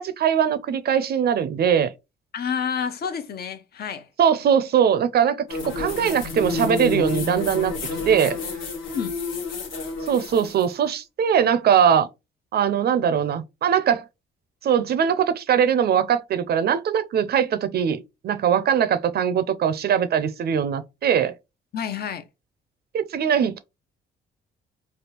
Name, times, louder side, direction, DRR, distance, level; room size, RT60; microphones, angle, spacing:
voice 1, 0.0-1.9 4.2-7.7 8.1-8.4 10.1-12.1 12.5-14.0 14.6-21.3 22.9-23.6, right 8 dB, 55° right, 0.5 m, -21 dB
voice 2, 2.3-4.1 8.9-9.1 21.7-22.2, left 7 dB, 50° left, 0.6 m, -29 dB
sound 1, 5.5-10.7, left 3 dB, 80° left, 1.1 m, -29 dB
3.3 x 2.3 x 2.9 m
cardioid pair, 90°, 20 cm